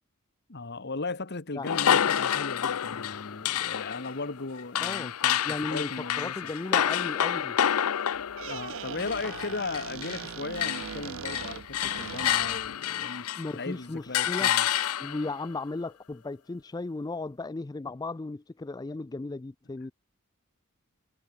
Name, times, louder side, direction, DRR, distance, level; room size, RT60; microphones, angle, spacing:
voice 1, 0.5-6.5 8.2-13.3 13.5-14.7, left 3 dB, 50° left, 1.4 m, -37 dB
sound 1, 1.6-10.3 10.6-13.6 14.1-15.3, left 10 dB, 85° left, 0.6 m, -29 dB
voice 2, 4.8-5.1 5.4-7.6 13.4-14.5 15.0-19.9, left 3 dB, 20° left, 0.4 m, -35 dB
Squeak, 8.1-12.8, right 8 dB, 60° right, 0.4 m, -40 dB
head